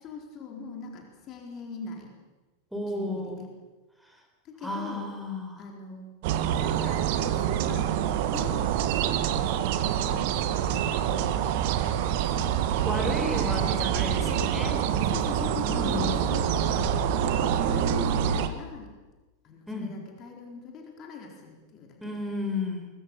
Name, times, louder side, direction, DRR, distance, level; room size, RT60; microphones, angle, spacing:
voice 1, 0.0-2.1 2.9-3.5 4.4-5.1 5.6-6.1 6.6-8.8 9.2-9.7 10.0-10.4 10.7-11.4 12.1-14.5 15.1-18.9 19.4-22.2, left 5 dB, 35° left, 2 dB, 4.1 m, -42 dB
voice 2, 2.7-3.4 4.6-5.6 12.8-14.8 15.5-16.1 19.7-19.9 22.0-22.9, left 2 dB, ahead, 2 dB, 5.2 m, -33 dB
sound 1, 6.2-18.5, right 9 dB, 50° right, 1.6 m, -26 dB
23.0 x 23.0 x 7.3 m, 1.2 s
figure-of-eight pair, 90°, 0 cm